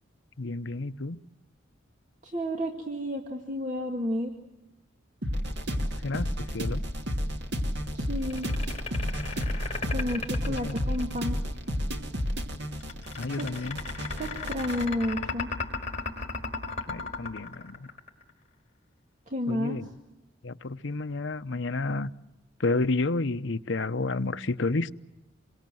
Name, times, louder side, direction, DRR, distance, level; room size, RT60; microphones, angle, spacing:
voice 1, 0.4-1.2 6.0-6.3 6.5-6.8 10.6-10.7 13.2-13.8 16.9-17.9 19.5-19.9 20.4-22.1 22.6-24.9, left 3 dB, 70° left, 10 dB, 0.8 m, -30 dB
voice 2, 2.2-4.3 7.9-8.5 9.9-11.4 13.4-13.5 14.2-15.5 19.3-19.8, equal, 40° right, 2 dB, 2.2 m, -31 dB
sound 1, 5.2-14.9, equal, 60° right, 2.4 m, -31 dB
sound 2, 8.2-11.4 12.8-18.3, left 4 dB, 35° left, 4.7 m, -35 dB
28.0 x 23.5 x 7.8 m, 0.98 s
head